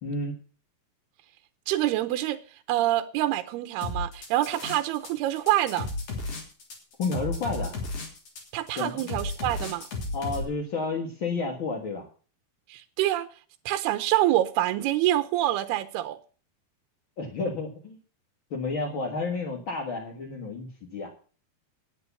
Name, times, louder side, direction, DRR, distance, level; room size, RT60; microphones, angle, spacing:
voice 1, 0.0-0.4 7.0-7.8 8.8-9.1 10.1-12.1 17.2-18.0 18.5-21.1, left 3 dB, 45° left, 1.8 m, -31 dB
voice 2, 1.7-2.4 2.7-5.9 8.5-9.9 12.7-13.3 13.7-16.2, right 14 dB, 85° right, 2.8 m, -26 dB
sound 1, 3.8-5.1 5.4-10.4, left 2 dB, 60° left, 4.8 m, -33 dB
10.0 x 9.1 x 7.0 m
omnidirectional pair, 4.5 m